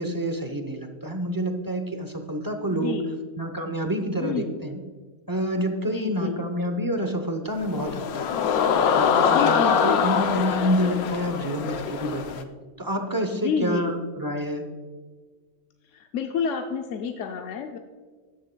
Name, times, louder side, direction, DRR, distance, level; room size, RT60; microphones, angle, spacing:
voice 1, 0.0-3.0 3.4-4.8 5.3-8.3 8.9-12.5 12.8-14.7, equal, 25° right, 6 dB, 0.4 m, -28 dB
voice 2, 2.7-3.2 4.2-4.5 5.9-6.4 9.3-10.0 13.3-13.9 15.9-17.8, left 7 dB, 70° left, 4 dB, 0.9 m, -29 dB
sound 1, 7.6-12.4, left 7 dB, 85° left, 1.1 m, -23 dB
13.0 x 10.0 x 2.2 m, 1.5 s
omnidirectional pair, 1.5 m